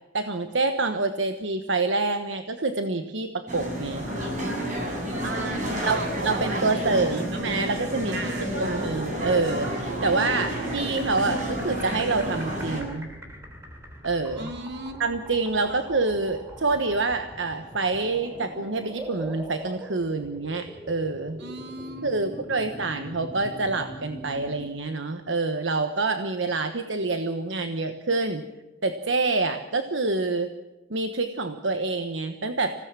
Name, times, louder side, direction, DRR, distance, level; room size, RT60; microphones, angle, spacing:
voice 1, 0.1-4.1 5.8-13.1 14.0-14.5 15.0-21.4 22.0-28.4 28.8-30.5 30.9-32.8, right 3 dB, 75° right, 7 dB, 1.3 m, -27 dB
sound 1, 3.5-12.8, equal, 40° right, 7.9 m, -30 dB
voice 2, 5.2-7.8 8.1-9.0 10.2-10.6 14.4-15.0 21.4-22.7, right 2 dB, 60° right, 5 dB, 2.8 m, -38 dB
sound 2, 10.6-24.7, right 1 dB, 15° right, 3.3 m, -42 dB
26.5 x 17.5 x 7.5 m, 1.1 s
head